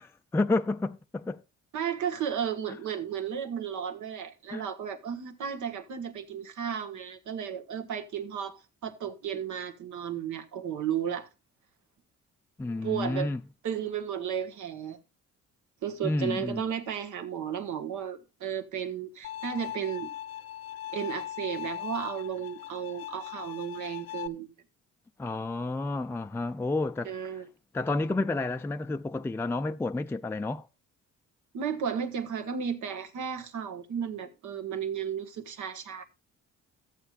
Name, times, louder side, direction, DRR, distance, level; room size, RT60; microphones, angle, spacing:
voice 1, 0.0-1.4 4.5-4.6 12.6-13.4 16.0-16.6 25.2-27.1 27.7-30.7, left 2 dB, 10° left, 0.4 m, -30 dB
voice 2, 1.7-11.3 12.8-13.3 13.6-15.0 15.8-20.1 20.9-24.5 27.0-27.4 31.5-36.0, right 8 dB, 75° right, 1.5 m, -34 dB
Bowed string instrument, 19.2-24.3, left 12 dB, 55° left, 0.6 m, -39 dB
14.5 x 7.9 x 2.5 m
cardioid pair, 90°, 30 cm